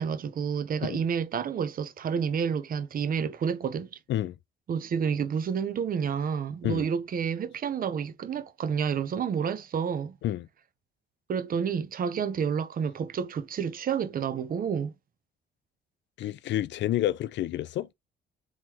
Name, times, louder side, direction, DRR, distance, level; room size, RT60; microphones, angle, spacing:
voice 1, 0.0-4.0 4.7-10.2 11.3-14.9, right 7 dB, 45° right, 0.6 m, -29 dB
voice 2, 16.2-17.9, left 13 dB, 65° left, 0.4 m, -29 dB
3.7 x 3.1 x 2.8 m
cardioid pair, 90°, 20 cm